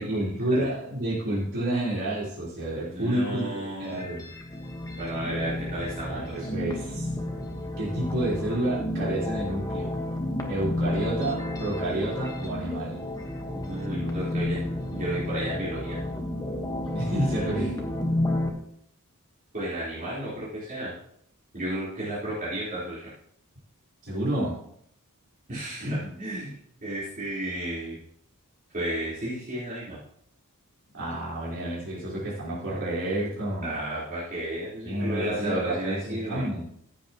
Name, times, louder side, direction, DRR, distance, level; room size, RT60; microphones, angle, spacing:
voice 1, 0.0-3.4 3.8-4.3 6.1-7.1 7.8-10.0 10.5-13.1 16.9-17.8 24.0-24.6 25.8-26.1 30.9-33.7 34.8-36.7, right 1 dB, 60° right, -7 dB, 4.1 m, -29 dB
voice 2, 2.9-4.0 5.0-6.5 13.5-16.0 17.1-17.5 19.5-20.9 21.5-23.1 25.5-26.6 26.8-28.0 28.7-30.0 33.6-36.4, right 1 dB, 40° right, -10 dB, 3.9 m, -33 dB
sound 1, 3.8-18.5, left 1 dB, 15° left, 1.3 m, -31 dB
15.0 x 8.2 x 3.0 m, 0.70 s
head